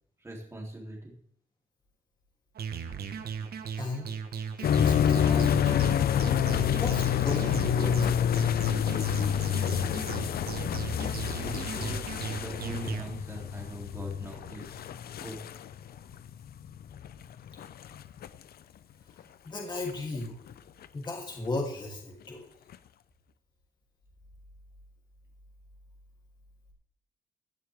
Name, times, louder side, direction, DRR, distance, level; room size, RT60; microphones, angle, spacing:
voice 1, 0.2-1.2 11.3-14.8 15.2-15.4, right 1 dB, 15° right, -2 dB, 3.3 m, -42 dB
sound 1, 2.5-13.0, right 7 dB, 80° right, 1.2 m, -37 dB
voice 2, 3.8-4.1 4.6-5.7 6.7-8.2 9.1-9.2 19.1-20.4 20.9-22.5, left 2 dB, 30° left, -1 dB, 3.1 m, -36 dB
sound 2, 4.6-18.4 19.2-19.3 19.9-20.5 20.8-20.9 22.7-22.8, left 9 dB, 80° left, 0.7 m, -28 dB
16.5 x 11.5 x 3.6 m, 0.64 s
wide cardioid pair, 155°, 16 cm